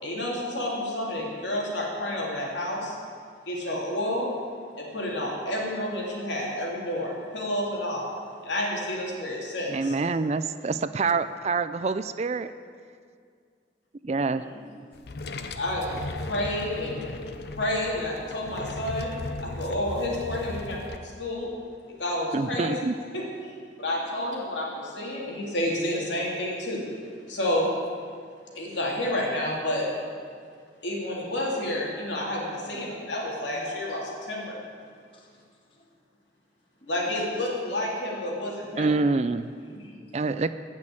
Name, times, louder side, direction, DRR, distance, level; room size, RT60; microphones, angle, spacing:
voice 1, 0.0-3.0 3.5-4.3 4.8-8.1 8.4-9.9 15.5-17.0 17.6-19.1 19.4-21.5 22.0-22.7 23.1-26.9 27.3-27.7 28.5-29.9 30.8-34.6 36.9-38.9, left 1 dB, 80° left, -3 dB, 3.3 m, -30 dB
voice 2, 9.7-12.5 14.0-14.4 22.3-22.9 38.8-39.5 40.1-40.5, right 3 dB, 35° right, 13 dB, 0.4 m, -26 dB
voice 3, 14.3-14.8 18.5-18.6 23.9-24.0 33.5-33.7 35.1-35.4 35.7-35.8 36.8-37.1 39.5-40.0, equal, 30° left, 0 dB, 1.5 m, -49 dB
sound 1, 14.9-21.0, left 2 dB, 60° left, 0.7 m, -37 dB
16.0 x 6.4 x 8.6 m, 2.1 s
head